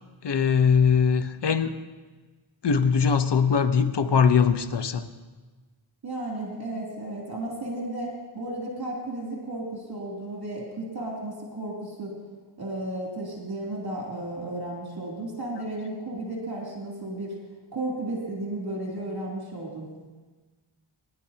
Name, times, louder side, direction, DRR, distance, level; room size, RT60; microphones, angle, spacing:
voice 1, 0.2-1.7 2.6-5.0, left 6 dB, 55° left, 10 dB, 1.0 m, -21 dB
voice 2, 6.0-12.1 12.6-17.3 17.7-19.9, right 1 dB, 50° right, -3 dB, 3.1 m, -34 dB
21.5 x 11.0 x 2.9 m, 1.3 s
cardioid pair, 60°, 49 cm